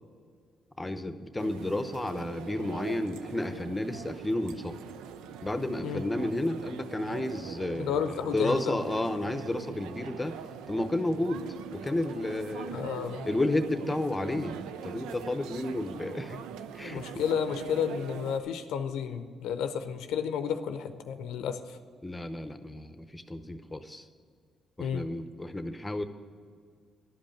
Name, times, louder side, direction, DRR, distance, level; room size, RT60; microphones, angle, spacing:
voice 1, 0.8-4.8 5.4-10.4 10.7-11.5 11.7-12.8 13.2-16.4 16.7-17.2 22.0-24.1 24.8-26.0, left 1 dB, 15° left, 10 dB, 0.8 m, -32 dB
sound 1, 1.4-18.4, right 8 dB, 90° right, 0.4 m, -42 dB
voice 2, 7.8-8.7 12.7-13.3 16.8-21.8 24.8-25.0, left 7 dB, 85° left, 9 dB, 0.6 m, -32 dB
11.5 x 5.3 x 8.7 m, 2.1 s
supercardioid pair, 70°, 0 cm